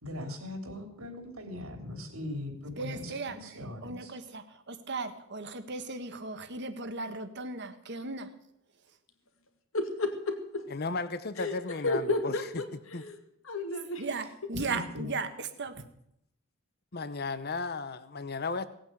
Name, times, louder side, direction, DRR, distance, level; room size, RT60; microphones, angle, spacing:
voice 1, 0.0-4.1 14.5-15.1, left 1 dB, 75° right, 5 dB, 3.3 m, -40 dB
voice 2, 2.8-8.3 14.0-15.8, right 3 dB, 55° right, 9 dB, 1.5 m, -37 dB
voice 3, 9.7-10.6 11.4-13.2 13.4-14.0 14.4-14.5, left 2 dB, 65° left, 6 dB, 2.4 m, -32 dB
voice 4, 10.7-12.6 12.9-13.0 14.7-14.9 16.9-18.7, left 3 dB, 45° left, 13 dB, 0.8 m, -35 dB
18.0 x 8.8 x 8.1 m, 0.77 s
head